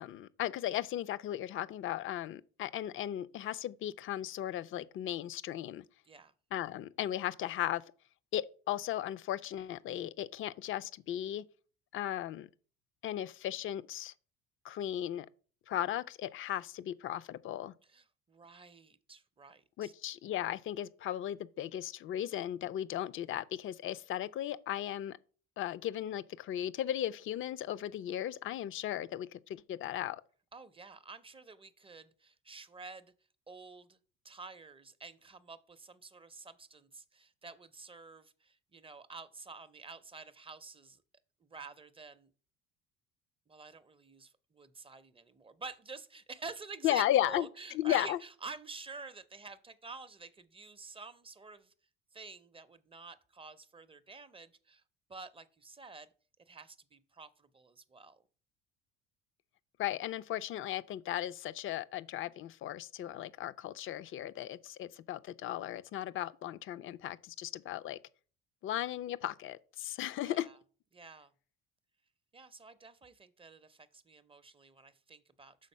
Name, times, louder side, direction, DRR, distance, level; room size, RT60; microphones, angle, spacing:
voice 1, 0.0-5.8 6.5-7.8 8.3-11.4 11.9-12.5 13.0-14.1 14.6-15.3 15.7-17.7 19.8-25.2 25.6-30.2 46.8-47.5 47.7-48.2 59.8-68.0 68.6-70.5, left 12 dB, 45° left, 0.4 m, -36 dB
voice 2, 17.9-19.9 30.5-33.1 33.5-34.0 34.2-41.0 41.4-42.3 43.5-51.7 52.1-54.8 55.1-56.1 56.5-58.2 70.2-70.6 70.9-71.3 72.3-75.7, right 4 dB, 20° right, 0.6 m, -49 dB
6.4 x 3.8 x 5.4 m
supercardioid pair, 85°, 29 cm